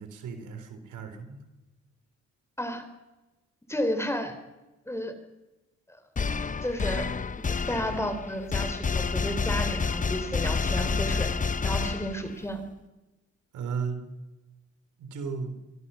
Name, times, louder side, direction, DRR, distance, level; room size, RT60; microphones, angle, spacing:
voice 1, 0.0-1.4 13.5-14.1 15.0-15.6, right 5 dB, 85° right, 7 dB, 4.0 m, -35 dB
voice 2, 3.7-4.4 4.9-5.1 6.6-7.1 7.7-11.3 11.6-12.6, equal, 10° left, 8 dB, 4.0 m, -32 dB
sound 1, 6.2-12.5, left 5 dB, 25° left, 0.9 m, -29 dB
24.0 x 23.5 x 5.8 m, 1.1 s
cardioid pair, 90°, 30 cm